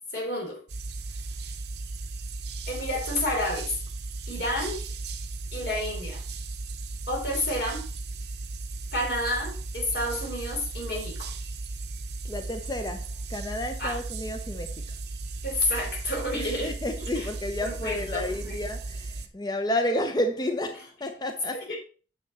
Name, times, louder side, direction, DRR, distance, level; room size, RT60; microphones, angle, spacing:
voice 1, 0.1-0.6 2.7-3.7 4.3-4.8 5.5-6.2 7.1-7.9 8.9-11.3 13.8-14.0 15.4-16.7 17.2-17.3 17.6-18.5 21.7-21.8, left 1 dB, 55° left, 3.7 m, -30 dB
sound 1, 0.7-19.3, right 3 dB, 65° right, 1.0 m, -36 dB
voice 2, 12.2-15.0 16.3-21.7, left 1 dB, 20° left, 0.7 m, -31 dB
9.1 x 6.1 x 4.2 m
head